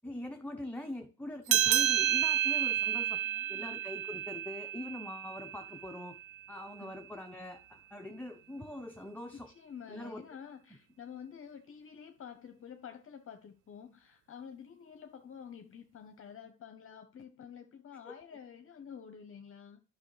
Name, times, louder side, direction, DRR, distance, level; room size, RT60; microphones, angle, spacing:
voice 1, 0.0-3.2 3.5-6.2 6.5-9.5 9.9-10.2 18.0-18.1, left 1 dB, 5° left, 0.8 m, -43 dB
sound 1, 1.5-6.4, right 11 dB, 85° right, 0.6 m, -31 dB
voice 2, 3.2-3.8 6.8-6.9 9.3-19.8, left 7 dB, 45° left, 0.9 m, -49 dB
9.8 x 6.3 x 3.3 m
cardioid pair, 90°, 30 cm